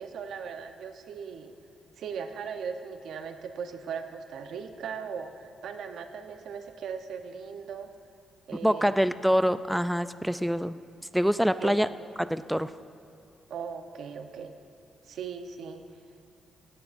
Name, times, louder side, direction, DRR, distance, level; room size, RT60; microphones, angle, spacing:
voice 1, 0.0-1.5 2.0-7.9 8.5-8.8 11.6-11.8 13.5-14.5 15.1-15.8, right 6 dB, 80° right, 7 dB, 0.8 m, -38 dB
voice 2, 8.6-10.8 11.1-11.9 12.2-12.7, equal, ahead, 13 dB, 0.3 m, -25 dB
17.5 x 16.0 x 2.6 m, 2.6 s
cardioid pair, 90°, 0 cm